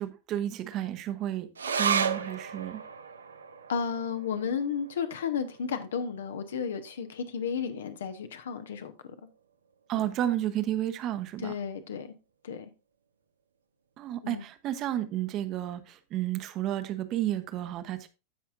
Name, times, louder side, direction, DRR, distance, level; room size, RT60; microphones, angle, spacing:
voice 1, 0.0-2.8 9.9-11.5 14.0-18.1, right 12 dB, 35° right, 0.9 m, -32 dB
sound 1, 1.6-8.3 8.7-8.8 9.1-9.7 10.3-10.4, right 6 dB, 70° right, 0.7 m, -35 dB
voice 2, 3.7-8.9 9.9-10.0 11.4-12.1 12.4-12.7 14.2-14.5, left 6 dB, 65° left, 1.0 m, -33 dB
15.5 x 5.6 x 2.5 m
figure-of-eight pair, 90°, 0 cm